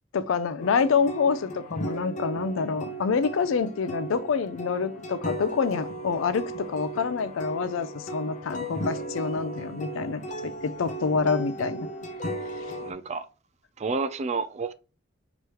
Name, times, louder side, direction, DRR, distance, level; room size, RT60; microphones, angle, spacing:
voice 1, 0.1-11.9 12.6-12.7, left 5 dB, 90° left, 0.4 m, -27 dB
sound 1, 0.6-12.9, right 1 dB, 40° left, 0.6 m, -36 dB
voice 2, 12.8-13.2 13.8-14.7, right 4 dB, 35° right, 0.4 m, -30 dB
4.7 x 3.0 x 2.9 m
head